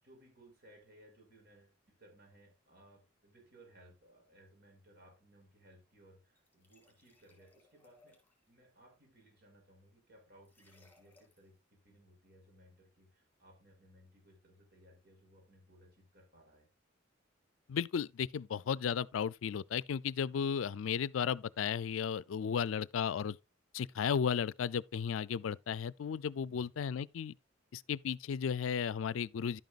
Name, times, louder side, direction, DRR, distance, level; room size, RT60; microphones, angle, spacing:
voice 1, 0.0-8.2 8.5-16.7, right 1 dB, 55° right, 4.8 m, -62 dB
sound 1, 6.4-8.5 10.4-11.6, left 2 dB, 10° left, 3.6 m, -67 dB
voice 2, 17.7-23.4 23.7-27.3 27.7-29.6, left 7 dB, 85° left, 0.4 m, -34 dB
11.0 x 9.2 x 2.4 m
head